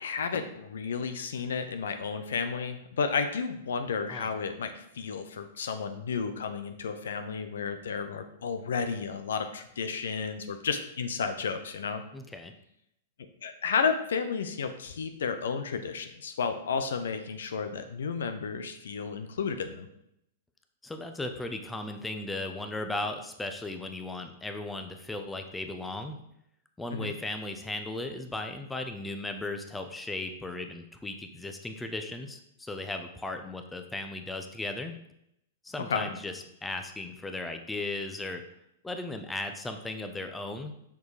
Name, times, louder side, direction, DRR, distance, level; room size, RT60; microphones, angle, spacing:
voice 1, 0.0-12.0 13.4-19.9 26.9-27.1 35.9-36.1, left 5 dB, 70° left, 8 dB, 0.8 m, -32 dB
voice 2, 12.1-12.5 20.8-26.2 26.8-35.0 35.6-38.4 38.8-40.7, left 2 dB, 10° left, 6 dB, 0.9 m, -36 dB
7.1 x 6.2 x 4.9 m, 0.78 s
figure-of-eight pair, 105°, 0 cm